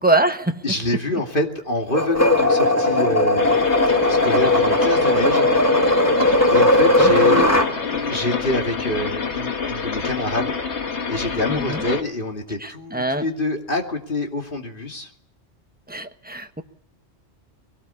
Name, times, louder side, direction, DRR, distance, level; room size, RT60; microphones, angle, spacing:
voice 1, 0.0-0.6 7.0-7.4 11.5-11.8 12.6-13.2 15.9-16.6, right 2 dB, 10° right, 7 dB, 1.1 m, -23 dB
voice 2, 0.6-3.5 4.1-5.5 6.5-7.5 7.8-10.6 11.1-15.1, left 2 dB, 50° left, 2 dB, 2.7 m, -26 dB
sound 1, 1.9-7.7, left 1 dB, 15° left, 1.8 m, -17 dB
sound 2, 3.4-12.0, left 5 dB, 80° left, 1.9 m, -27 dB
22.5 x 18.0 x 7.0 m, 0.69 s
omnidirectional pair, 1.1 m